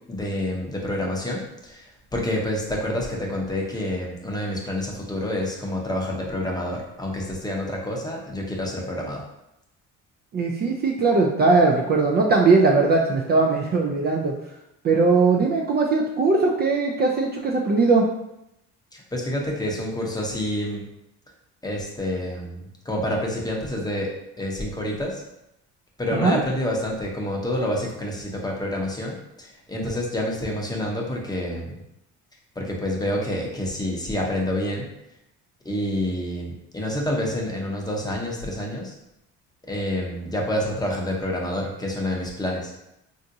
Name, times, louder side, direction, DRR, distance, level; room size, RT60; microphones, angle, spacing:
voice 1, 0.1-9.2 18.9-20.9 21.6-24.1 24.4-25.2 26.0-31.8 32.6-34.9 35.6-38.9 39.7-42.7, left 1 dB, 15° left, -1 dB, 0.7 m, -28 dB
voice 2, 10.3-14.3 14.8-18.1 26.2-26.4, right 3 dB, 35° right, -1 dB, 0.4 m, -19 dB
3.5 x 2.5 x 2.7 m, 0.84 s
cardioid pair, 105°, 31 cm